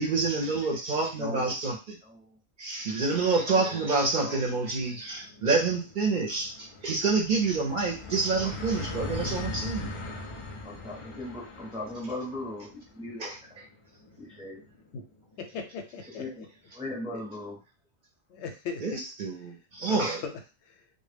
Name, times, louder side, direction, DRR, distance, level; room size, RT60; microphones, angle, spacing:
voice 1, 0.0-2.0 2.6-10.0 13.2-13.4 18.8-20.2, right 4 dB, 55° right, 1 dB, 0.6 m, -28 dB
voice 2, 1.2-1.6 2.0-2.4 3.5-3.9 4.2-4.4 8.4-8.5 10.6-13.5 14.2-14.6 16.2-16.5 16.7-17.6, left 1 dB, 5° right, -3 dB, 0.4 m, -38 dB
sound 1, 4.3-15.6, left 2 dB, 55° left, 0.3 m, -41 dB
voice 3, 15.4-16.5 17.1-17.2 18.3-19.0 19.4-21.0, left 5 dB, 90° left, 5 dB, 0.9 m, -40 dB
2.1 x 2.1 x 3.3 m, 0.32 s
omnidirectional pair, 1.1 m